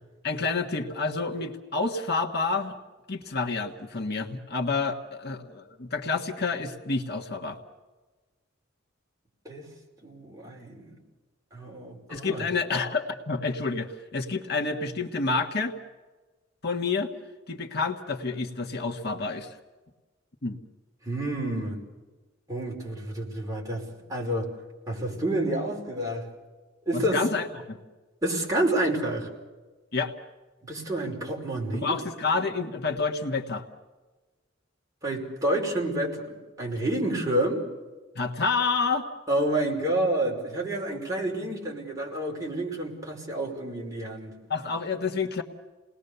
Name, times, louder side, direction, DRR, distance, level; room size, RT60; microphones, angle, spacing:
voice 1, 0.2-2.7 3.1-7.6 12.1-15.7 16.6-17.1 17.5-19.5 20.4-20.6 26.9-27.8 29.9-30.1 31.7-33.6 38.1-39.1 44.5-45.4, left 4 dB, 55° left, 2 dB, 1.6 m, -29 dB
voice 2, 10.0-11.0 11.5-12.5 21.0-21.8 22.5-24.5 24.9-26.3 26.8-27.3 28.2-29.3 30.6-32.0 35.0-37.6 39.3-44.3, right 1 dB, 15° right, -2 dB, 5.1 m, -29 dB
29.5 x 20.0 x 6.9 m, 1.3 s
head